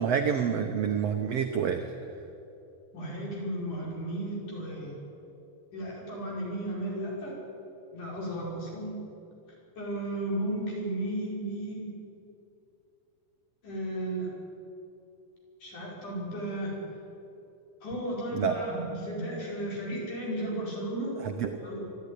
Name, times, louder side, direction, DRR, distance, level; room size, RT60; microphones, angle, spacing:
voice 1, 0.0-1.8 18.3-18.5 21.2-21.5, right 7 dB, 85° right, 5 dB, 1.4 m, -27 dB
voice 2, 2.9-4.9 5.7-7.4 7.9-9.0 9.8-11.9 13.6-14.3 15.6-16.7 17.8-21.2 21.6-21.8, right 1 dB, 55° left, -4 dB, 6.6 m, -34 dB
24.0 x 12.5 x 10.0 m, 2.8 s
omnidirectional pair, 4.3 m